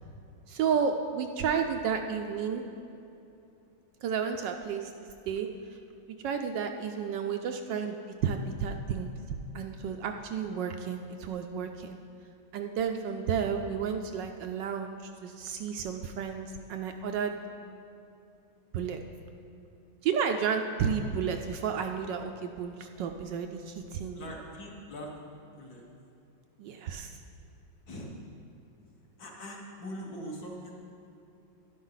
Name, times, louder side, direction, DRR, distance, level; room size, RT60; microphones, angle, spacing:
voice 1, 0.5-2.6 4.0-4.9 5.3-5.5 6.2-8.0 8.2-12.0 12.5-15.0 15.2-17.3 18.7-19.0 20.0-24.3 26.6-27.1, right 6 dB, 75° right, 5 dB, 1.1 m, -32 dB
voice 2, 24.2-25.1 25.6-25.8 27.9-28.2 29.2-30.7, equal, 55° left, -2 dB, 1.8 m, -42 dB
11.5 x 10.5 x 4.0 m, 2.7 s
omnidirectional pair, 2.2 m